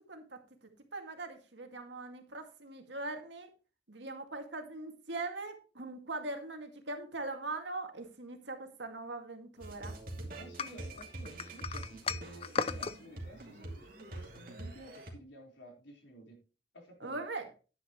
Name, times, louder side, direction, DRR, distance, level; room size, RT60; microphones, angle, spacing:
voice 1, 0.1-0.4 0.9-3.5 3.9-10.3 17.0-17.5, right 2 dB, 75° right, 5 dB, 2.2 m, -41 dB
sound 1, 9.6-15.1, right 1 dB, 50° right, 2.6 m, -45 dB
voice 2, 10.4-16.4 16.7-17.2, right 1 dB, 80° left, 1 dB, 4.3 m, -53 dB
sound 2, 10.6-13.0, left 5 dB, 30° left, 0.4 m, -36 dB
11.0 x 10.0 x 3.1 m, 0.34 s
head